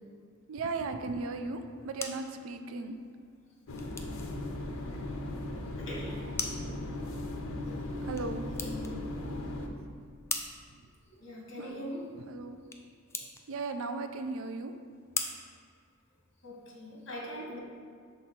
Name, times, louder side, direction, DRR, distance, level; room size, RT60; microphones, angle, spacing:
voice 1, 0.5-3.0 8.0-8.5 10.7-10.8 11.6-12.0 12.3-12.6 13.5-14.7, right 3 dB, 80° right, 7 dB, 0.4 m, -36 dB
sound 1, 1.5-16.5, left 4 dB, 15° left, 0.3 m, -44 dB
sound 2, 3.7-9.7, left 1 dB, 85° left, 0.6 m, -37 dB
voice 2, 5.8-6.2 8.6-9.0 11.2-12.1 16.4-17.6, left 1 dB, 65° left, -3 dB, 1.5 m, -41 dB
6.0 x 3.9 x 4.3 m, 2.1 s
head